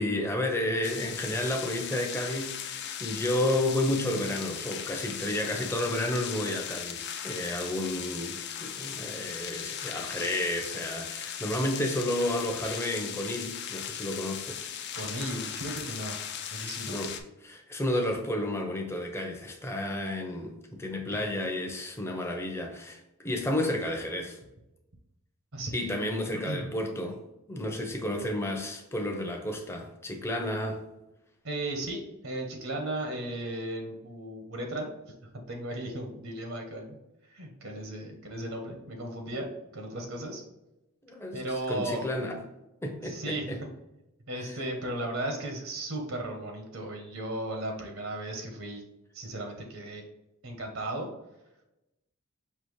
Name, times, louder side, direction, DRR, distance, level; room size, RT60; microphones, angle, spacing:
voice 1, 0.0-14.7 16.9-24.4 25.7-27.2 27.5-30.8 41.1-42.4 42.8-43.6 44.3-44.6, left 1 dB, 10° left, 0.7 m, -31 dB
sound 1, 0.8-17.2, left 9 dB, 50° left, 0.5 m, -38 dB
voice 2, 14.9-16.2 16.5-17.0 25.5-26.0 26.4-26.7 31.4-34.9 35.5-37.0 37.3-39.5 39.7-40.4 41.3-42.1 43.0-43.7 44.3-48.8 49.1-50.0 50.4-51.1, right 1 dB, 70° right, 1.0 m, -35 dB
5.6 x 2.9 x 3.1 m
head